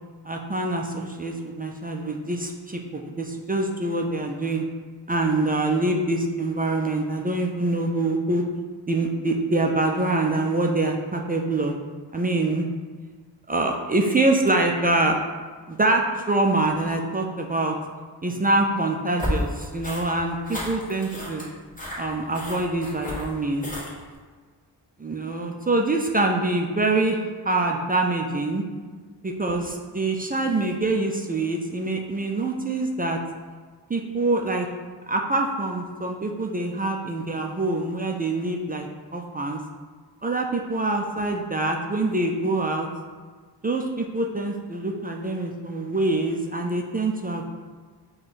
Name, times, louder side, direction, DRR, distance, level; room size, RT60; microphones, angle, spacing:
voice 1, 0.3-4.6 5.1-8.4 8.9-11.7 12.1-12.7 13.5-15.2 15.7-17.8 18.2-21.5 22.0-23.7 25.0-28.6 29.2-33.2 33.9-34.7 35.1-39.6 40.2-42.9 43.6-47.5, right 2 dB, 20° right, 1 dB, 0.3 m, -25 dB
sound 1, 19.2-24.1, left 1 dB, 20° left, 1.2 m, -33 dB
4.7 x 2.3 x 4.1 m, 1.5 s
cardioid pair, 70°, 43 cm